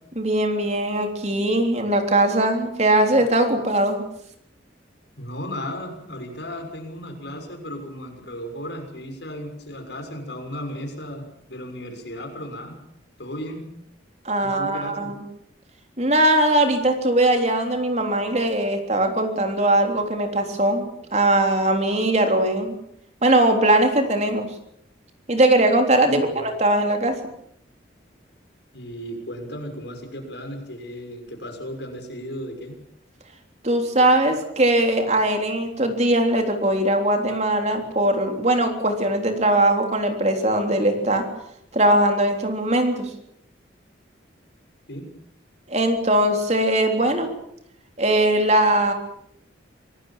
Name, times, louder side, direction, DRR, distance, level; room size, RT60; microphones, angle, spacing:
voice 1, 0.2-4.0 14.3-15.2 16.0-22.8 23.2-24.5 25.3-27.2 33.6-41.3 41.7-43.1 45.7-47.3 48.0-48.9, right 1 dB, 35° right, 5 dB, 3.6 m, -20 dB
voice 2, 5.2-12.7 13.2-13.6 14.4-15.1 26.0-26.4 28.7-32.8 44.9-45.1, equal, 70° left, 4 dB, 6.4 m, -35 dB
26.0 x 18.5 x 7.5 m, 0.74 s
head